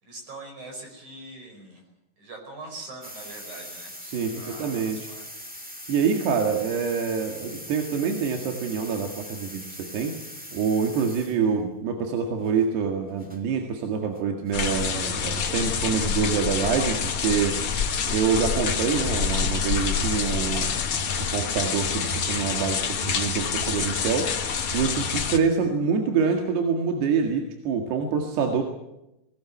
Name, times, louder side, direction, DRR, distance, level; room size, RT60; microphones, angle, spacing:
voice 1, 0.0-1.8 2.2-3.9 4.3-5.5, right 2 dB, 45° right, 2 dB, 6.5 m, -42 dB
sound 1, 3.0-11.6 12.4-12.6 13.1-13.4 14.0-14.2 14.5-14.6 15.1-15.3 16.1-16.2 16.6-17.9 18.6-18.9 19.2-20.9, equal, 5° right, 1.3 m, -42 dB
voice 2, 4.0-5.1 5.9-10.2 10.5-17.8 18.1-20.8 21.3-24.3 24.7-28.6, right 6 dB, 80° right, 3 dB, 4.0 m, -26 dB
sound 2, 14.5-25.4, left 6 dB, 55° left, 1.5 m, -27 dB
21.0 x 19.0 x 9.3 m, 0.89 s
omnidirectional pair, 4.7 m